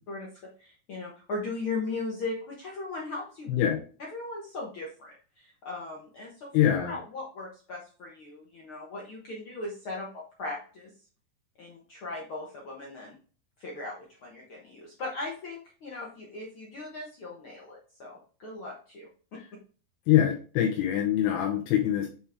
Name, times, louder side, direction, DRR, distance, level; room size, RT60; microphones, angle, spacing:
voice 1, 0.1-3.5 4.0-6.5 6.9-10.9 11.6-13.2 13.6-19.1, left 3 dB, 75° left, -3 dB, 1.2 m, -38 dB
voice 2, 3.5-3.8 6.5-6.9 20.1-22.1, left 11 dB, 90° left, 1 dB, 2.9 m, -24 dB
7.4 x 4.5 x 3.5 m, 0.39 s
omnidirectional pair, 4.4 m